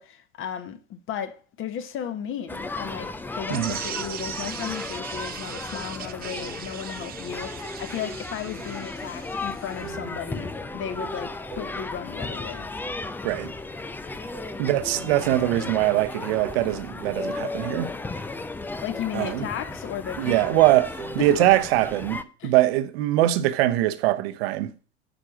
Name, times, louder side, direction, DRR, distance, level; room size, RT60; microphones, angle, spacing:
voice 1, 0.0-12.7 18.8-20.7 21.2-21.5 22.4-22.5, left 9 dB, 35° left, 1.3 m, -35 dB
sound 1, 2.5-22.2, left 3 dB, 5° left, 0.4 m, -35 dB
sound 2, 3.5-9.9, right 10 dB, 25° right, 0.7 m, -39 dB
sound 3, 6.9-9.3 9.8-12.9 13.3-20.7 21.0-21.8, right 3 dB, 85° right, 2.3 m, -45 dB
voice 2, 14.6-17.9 19.1-19.5 20.2-24.7, right 15 dB, 55° right, 1.1 m, -22 dB
10.0 x 4.7 x 6.2 m
figure-of-eight pair, 85°, 36 cm